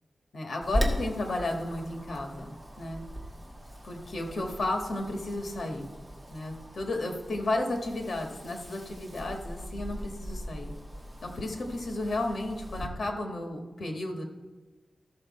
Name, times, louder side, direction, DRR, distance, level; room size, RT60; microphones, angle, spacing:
voice 1, 0.3-2.5 2.8-3.0 3.8-5.9 6.3-10.7 11.2-14.2, left 2 dB, 60° left, 2 dB, 1.7 m, -33 dB
Wind, 0.6-12.9, equal, 15° right, 1.5 m, -38 dB
14.5 x 6.5 x 4.3 m, 1.3 s
wide cardioid pair, 155°, 0 cm